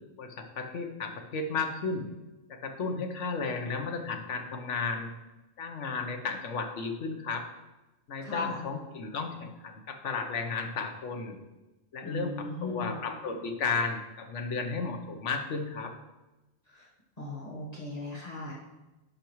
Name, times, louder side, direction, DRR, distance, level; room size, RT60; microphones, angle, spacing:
voice 1, 0.2-2.1 2.5-5.1 5.6-7.5 8.1-11.4 11.9-15.9, left 4 dB, 85° left, 5 dB, 1.2 m, -33 dB
voice 2, 8.2-8.6 12.0-12.9 16.7-16.9 17.2-18.5, left 2 dB, 35° left, -6 dB, 1.3 m, -38 dB
10.5 x 5.9 x 3.1 m, 1.1 s
omnidirectional pair, 1.2 m